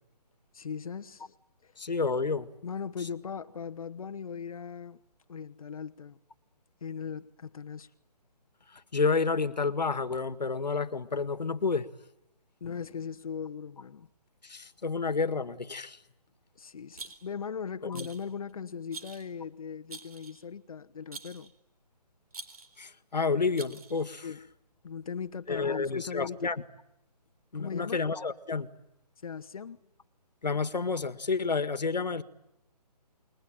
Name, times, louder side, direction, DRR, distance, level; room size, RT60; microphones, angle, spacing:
voice 1, 0.5-1.3 1.6-1.7 2.6-5.0 5.3-6.2 6.8-7.9 12.6-14.1 16.6-21.5 24.2-24.5 24.8-26.5 27.5-28.0 29.2-29.8, left 6 dB, 55° left, 1.1 m, -39 dB
voice 2, 1.8-2.5 8.7-11.9 14.4-16.0 17.9-18.1 22.8-24.3 25.5-26.6 27.5-28.7 30.4-32.2, left 4 dB, 90° left, 1.9 m, -30 dB
Rattle, 16.9-17.5 17.9-18.3 18.9-19.3 19.9-20.4 21.1-21.5 22.3-22.8 23.6-24.1, right 4 dB, 60° right, 4.0 m, -45 dB
29.5 x 22.0 x 9.0 m
hypercardioid pair, 160°, 21 cm